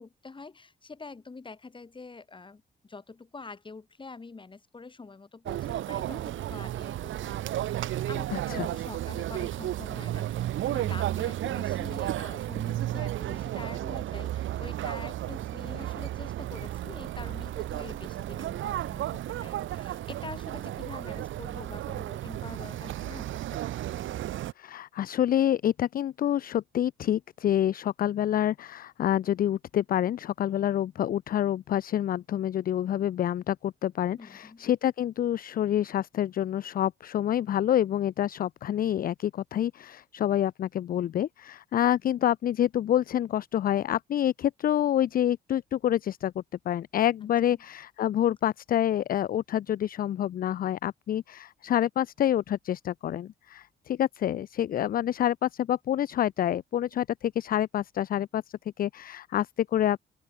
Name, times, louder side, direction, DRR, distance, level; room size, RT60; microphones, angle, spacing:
voice 1, 0.0-23.5 23.9-24.1 34.2-34.7, left 4 dB, 25° left, 2.3 m, -46 dB
sound 1, 5.5-24.5, right 13 dB, 75° right, 1.7 m, -33 dB
voice 2, 8.3-8.7 24.6-58.4 58.8-60.0, left 11 dB, 45° left, 0.4 m, -27 dB
open air
cardioid pair, 90°, 20 cm